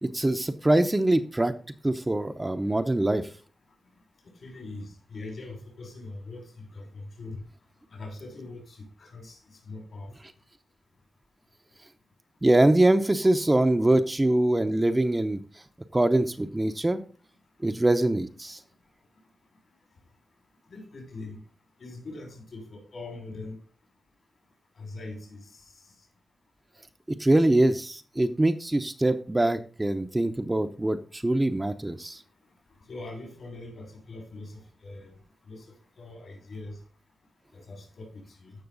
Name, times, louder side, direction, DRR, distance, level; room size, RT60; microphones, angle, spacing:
voice 1, 0.0-1.5 1.8-3.2 12.4-15.4 15.9-17.0 17.6-18.6 27.1-32.2, right 1 dB, 20° right, 0.8 m, -23 dB
voice 2, 4.4-6.4 6.7-7.4 7.9-9.4 9.7-10.1 20.7-21.4 21.8-23.6 24.8-25.4 32.9-34.5 34.8-35.1 35.5-35.6 36.0-36.8 37.5-38.5, left 2 dB, 70° left, 5.6 m, -41 dB
14.0 x 5.9 x 4.0 m
cardioid pair, 70°, 0 cm